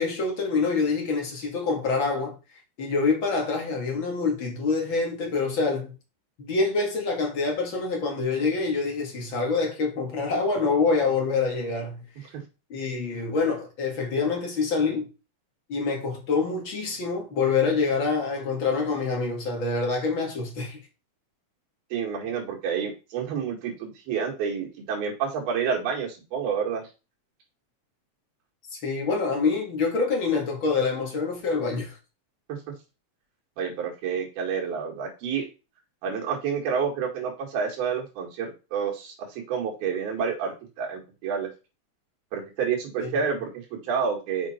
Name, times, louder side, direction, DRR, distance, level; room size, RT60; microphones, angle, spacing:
voice 1, 0.0-2.3 2.8-5.9 6.4-12.0 12.7-15.1 15.7-20.8 28.8-32.0 43.0-43.1, left 4 dB, 40° left, 2.2 m, -26 dB
voice 2, 21.9-26.8 33.6-35.4 36.0-41.5 42.3-44.5, right 6 dB, 70° right, 3.9 m, -29 dB
6.8 x 6.7 x 4.4 m
omnidirectional pair, 4.5 m